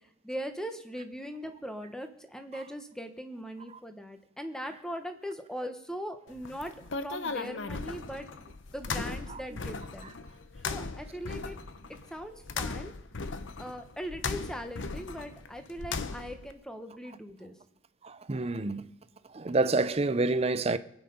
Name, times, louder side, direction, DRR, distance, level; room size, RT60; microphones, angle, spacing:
voice 1, 0.2-6.7 7.0-8.3 8.7-10.1 10.6-11.6 12.1-12.9 13.6-17.5, equal, 5° left, 1.1 m, -40 dB
sound 1, 6.3-16.5, left 4 dB, 75° left, 0.8 m, -38 dB
voice 2, 18.0-18.9 19.3-20.8, right 3 dB, 30° right, 0.6 m, -28 dB
23.0 x 9.0 x 5.3 m
head